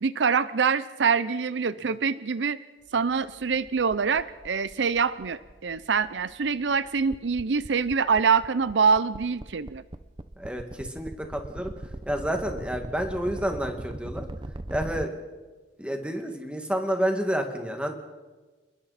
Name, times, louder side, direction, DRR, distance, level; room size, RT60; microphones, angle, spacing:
voice 1, 0.0-2.6 2.9-9.8, right 5 dB, 80° right, 16 dB, 0.6 m, -25 dB
sound 1, 3.0-15.1, right 1 dB, 25° right, 0.7 m, -41 dB
voice 2, 10.4-11.7 12.1-14.3 14.7-15.2 15.8-17.9, equal, 5° right, 4 dB, 2.0 m, -29 dB
29.0 x 21.0 x 4.2 m, 1.3 s
head